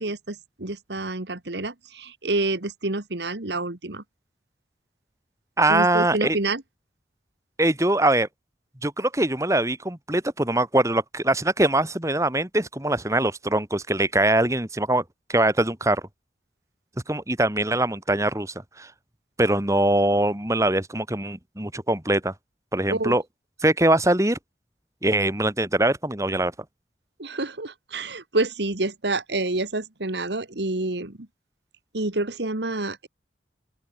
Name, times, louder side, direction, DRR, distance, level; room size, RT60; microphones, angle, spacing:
voice 1, 0.0-4.0 5.7-6.6 22.9-23.2 27.2-31.3 31.9-33.1, right 2 dB, 80° right, 2.0 m, -28 dB
voice 2, 5.6-6.4 7.6-8.3 8.8-15.0 15.3-16.0 17.1-18.9 19.4-22.3 22.7-23.2 23.6-24.4 25.0-26.5, right 1 dB, 20° right, 2.5 m, -22 dB
open air
head